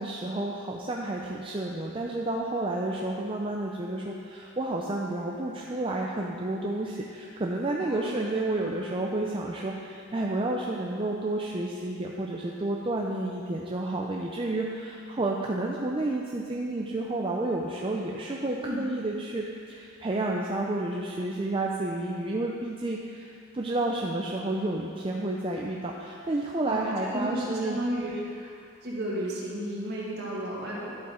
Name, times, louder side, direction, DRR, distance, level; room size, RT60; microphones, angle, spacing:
voice 1, 0.0-27.8, right 2 dB, 25° right, -1 dB, 0.5 m, -30 dB
voice 2, 7.8-8.1 18.6-18.8 26.6-28.5 28.8-30.9, right 1 dB, 50° right, -5 dB, 2.0 m, -33 dB
11.0 x 8.1 x 3.8 m, 2.4 s
head